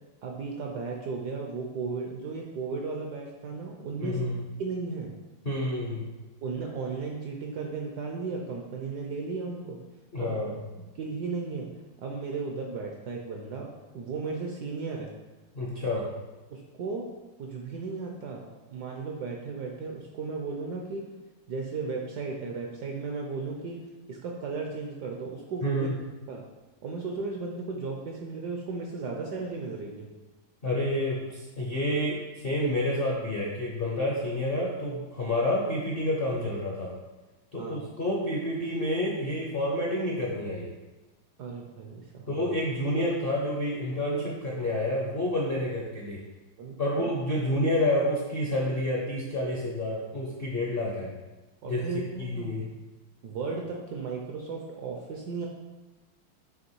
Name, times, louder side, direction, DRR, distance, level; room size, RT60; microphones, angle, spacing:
voice 1, 0.2-4.2 4.6-5.1 6.4-9.8 10.2-10.4 11.0-11.7 12.0-15.1 16.5-17.1 17.4-21.0 21.5-23.8 24.1-25.9 26.3-26.4 26.8-30.1 37.6-37.8 41.4-42.5 46.6-47.1 51.6-52.5 53.2-55.5, right 4 dB, 70° right, 0 dB, 1.0 m, -35 dB
voice 2, 4.0-4.3 5.4-6.1 10.1-10.6 15.5-16.1 25.6-25.9 30.6-37.0 37.5-40.7 42.3-46.2 46.8-51.1 51.7-51.9 52.2-52.8, left 1 dB, 55° left, -4 dB, 0.6 m, -29 dB
6.4 x 3.4 x 4.5 m, 1.1 s
omnidirectional pair, 2.3 m